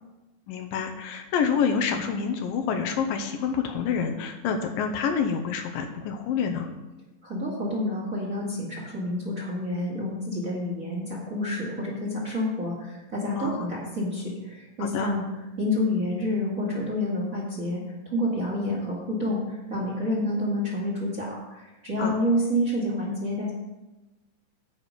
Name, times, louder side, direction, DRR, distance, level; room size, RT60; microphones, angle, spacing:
voice 1, 0.5-6.7 13.4-13.7 14.8-15.1 22.0-22.2, left 6 dB, 75° left, 5 dB, 2.5 m, -27 dB
voice 2, 7.2-15.2 15.6-17.8 18.1-23.5, left 1 dB, 30° right, -4 dB, 2.0 m, -28 dB
10.0 x 8.7 x 5.2 m, 1.1 s
omnidirectional pair, 4.1 m